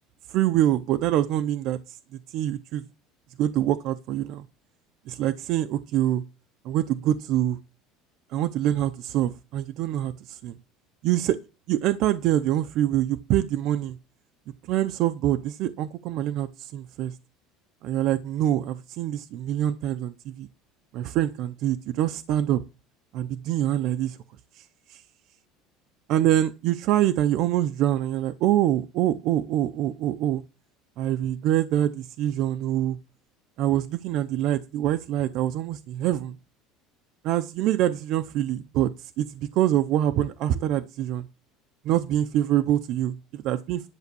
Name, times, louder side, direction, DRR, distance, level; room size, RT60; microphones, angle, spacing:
voice 1, 0.3-2.0 2.3-2.8 3.4-4.4 5.1-6.2 6.6-7.6 8.3-10.5 11.0-11.4 11.7-14.0 14.7-17.1 17.8-20.5 20.9-22.6 23.1-24.2 24.9-25.0 26.1-30.4 31.0-33.0 33.6-36.3 37.2-38.9 39.2-41.2 41.8-43.9, right 12 dB, 50° right, 0.6 m, -25 dB
11.0 x 6.9 x 6.9 m
cardioid pair, 170°, 0 cm